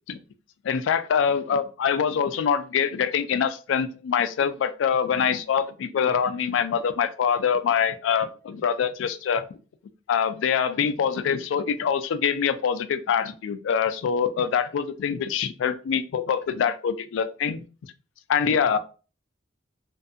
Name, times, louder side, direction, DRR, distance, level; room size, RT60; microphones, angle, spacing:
voice 1, 0.6-9.4 10.1-17.6 18.3-18.8, left 7 dB, 85° left, 12 dB, 0.3 m, -24 dB
2.6 x 2.4 x 2.4 m, 0.35 s
head